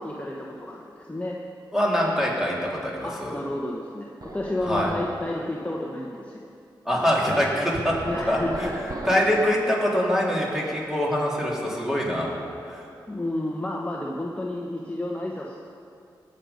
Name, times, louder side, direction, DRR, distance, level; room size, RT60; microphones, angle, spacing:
voice 1, 0.0-1.4 3.0-6.5 8.0-8.7 13.1-15.6, left 1 dB, 15° left, -2 dB, 1.2 m, -31 dB
voice 2, 1.7-2.5 2.8-3.4 4.6-4.9 6.8-7.9 8.3-8.7 9.0-12.3 12.6-12.8, equal, 5° right, -4 dB, 3.4 m, -24 dB
sound 1, 4.2-5.3 7.9-9.6, right 2 dB, 45° right, 1.2 m, -37 dB
18.5 x 6.6 x 5.2 m, 2.6 s
cardioid pair, 60°, 9 cm